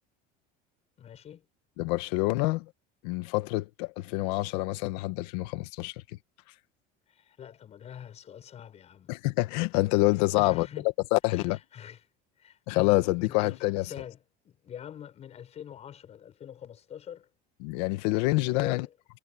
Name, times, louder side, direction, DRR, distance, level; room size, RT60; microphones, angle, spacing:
voice 1, 1.0-1.5 7.1-9.1 10.3-10.9 11.3-12.0 12.4-14.2 14.4-17.3 18.4-18.9, left 9 dB, 30° left, 5.8 m, -44 dB
voice 2, 1.8-2.7 3.0-5.9 9.1-10.7 11.1-11.6 12.7-13.9 17.6-18.9, left 21 dB, 90° left, 1.5 m, -27 dB
cardioid pair, 160°, 21 cm